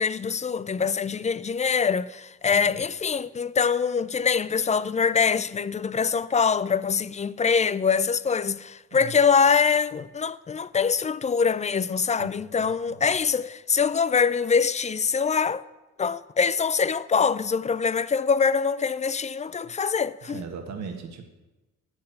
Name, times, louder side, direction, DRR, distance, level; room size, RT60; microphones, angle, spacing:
voice 1, 0.0-15.6 16.0-20.4, left 6 dB, 25° left, 0.3 m, -24 dB
voice 2, 2.4-2.8 9.0-9.1 12.2-12.3 12.6-13.1 19.6-19.7 20.2-21.2, right 5 dB, 65° right, 1.6 m, -39 dB
9.5 x 7.7 x 7.6 m
cardioid pair, 90°, 30 cm